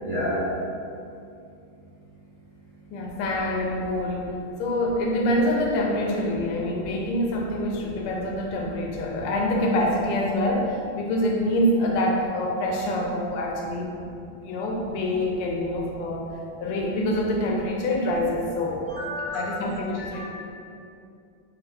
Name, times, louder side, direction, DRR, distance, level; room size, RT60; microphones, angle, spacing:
voice 1, 0.0-0.4 18.9-19.5 20.0-20.2, equal, 25° right, -13 dB, 0.9 m, -30 dB
voice 2, 2.9-4.3 4.6-13.9 14.4-16.3 16.6-18.9 19.2-20.2, left 1 dB, 90° left, 0 dB, 1.5 m, -26 dB
3.4 x 3.1 x 3.7 m, 2.5 s
omnidirectional pair, 2.3 m